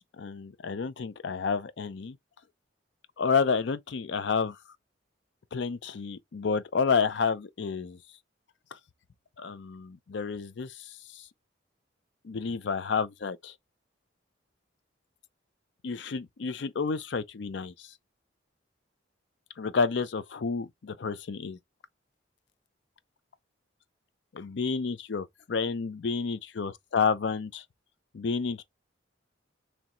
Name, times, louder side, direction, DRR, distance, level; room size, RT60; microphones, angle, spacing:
voice 1, 0.2-2.2 3.2-4.6 5.5-8.0 9.4-11.3 12.2-13.5 15.8-17.9 19.6-21.6 24.3-27.6 28.1-28.6, left 5 dB, 65° left, 0.4 m, -30 dB
3.2 x 2.9 x 3.7 m
head